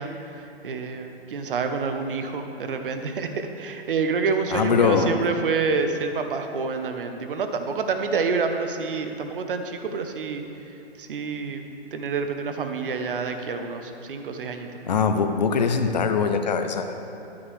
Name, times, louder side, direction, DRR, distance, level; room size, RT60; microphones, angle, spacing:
voice 1, 0.0-10.4 11.0-11.6 11.9-14.8, right 4 dB, 55° right, 6 dB, 0.8 m, -28 dB
voice 2, 4.5-5.2 14.8-16.9, left 5 dB, 40° left, 7 dB, 0.6 m, -22 dB
10.5 x 9.5 x 3.2 m, 2.9 s
hypercardioid pair, 165°, 33 cm